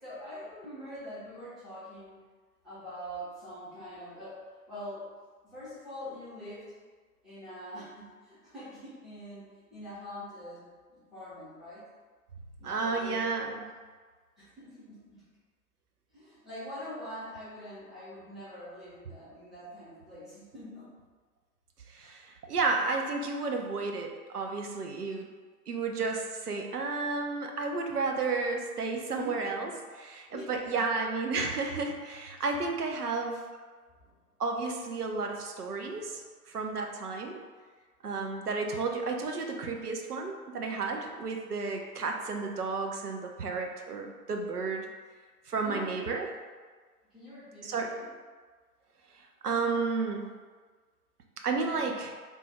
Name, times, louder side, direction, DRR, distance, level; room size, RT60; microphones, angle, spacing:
voice 1, 0.0-2.2 2.6-4.4 4.7-5.1 5.4-6.7 7.2-10.6 10.9-11.9 12.6-13.6 14.4-15.3 16.1-20.9 30.3-30.8 34.0-34.1 45.6-46.3 47.1-48.1 51.4-51.9, equal, ahead, -14 dB, 0.6 m, -44 dB
voice 2, 12.6-13.6 21.9-25.3 25.7-33.4 34.4-36.2 36.5-37.4 38.0-44.9 45.5-46.3 47.6-47.9 49.4-50.2 51.4-52.1, right 4 dB, 75° right, 3 dB, 0.6 m, -32 dB
3.4 x 2.2 x 4.1 m, 1.5 s
figure-of-eight pair, 120°, 46 cm